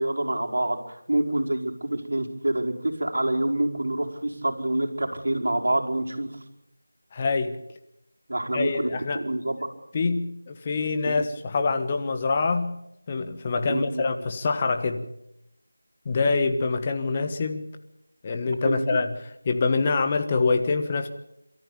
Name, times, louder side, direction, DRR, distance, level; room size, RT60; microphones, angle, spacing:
voice 1, 0.0-6.4 8.3-9.7 11.1-11.2 13.6-14.0 18.6-19.0, right 1 dB, 65° right, 3 dB, 4.5 m, -27 dB
voice 2, 7.1-7.6 8.5-9.2 9.9-12.8 13.1-15.0 16.0-17.7 18.2-19.1 19.4-21.1, left 4 dB, 25° left, 7 dB, 1.3 m, -25 dB
28.5 x 14.0 x 8.7 m, 0.81 s
figure-of-eight pair, 170°, 0 cm